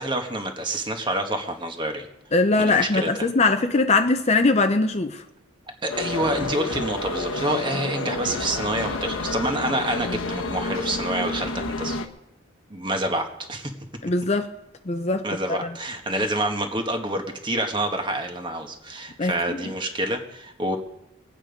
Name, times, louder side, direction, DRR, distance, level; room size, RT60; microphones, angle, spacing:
voice 1, 0.0-2.1 2.6-3.3 5.8-12.0 12.7-13.7 15.2-20.8, right 1 dB, 25° right, 1.5 m, -27 dB
voice 2, 2.3-5.2 14.0-14.5 14.9-15.7 19.2-19.6, left 3 dB, 35° left, 0.6 m, -21 dB
sound 1, 5.9-12.1, left 2 dB, 85° left, 1.1 m, -29 dB
22.0 x 8.9 x 5.2 m
head